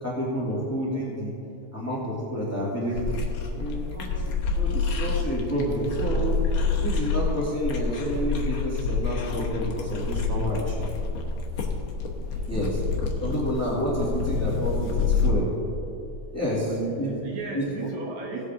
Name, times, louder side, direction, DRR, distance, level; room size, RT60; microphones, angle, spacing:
voice 1, 0.0-1.3 1.7-3.2 3.5-6.4 6.8-10.9 12.5-12.7 13.2-15.5 16.3-16.7 17.0-17.1 17.5-17.6, equal, 5° left, -6 dB, 2.1 m, -29 dB
sound 1, 3.0-15.3, left 4 dB, 60° left, 1.4 m, -28 dB
voice 2, 16.5-18.5, right 4 dB, 70° right, 0 dB, 2.4 m, -35 dB
17.5 x 8.2 x 3.7 m, 2.9 s
omnidirectional pair, 3.5 m